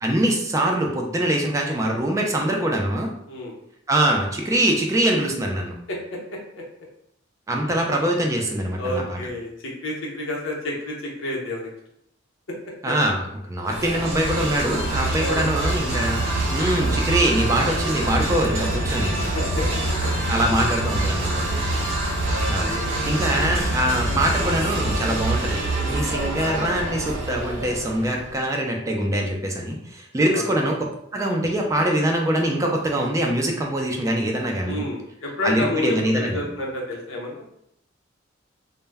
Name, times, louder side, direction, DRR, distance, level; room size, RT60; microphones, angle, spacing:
voice 1, 0.0-3.1 3.9-5.7 7.5-9.2 12.8-16.2 16.5-19.1 20.3-21.5 22.5-22.7 23.1-30.7 31.1-34.8 35.4-36.4, right 1 dB, 15° right, 1 dB, 0.3 m, -23 dB
voice 2, 5.9-6.6 8.3-8.4 8.8-11.7 15.2-15.4 16.8-17.2 19.3-19.6 20.0-20.1 22.0-23.7 24.1-24.2 30.3-30.7 34.6-37.4, left 1 dB, 90° left, -3 dB, 0.7 m, -31 dB
sound 1, 13.6-28.3, right 1 dB, 85° right, 0.8 m, -25 dB
2.1 x 2.1 x 3.3 m, 0.76 s
head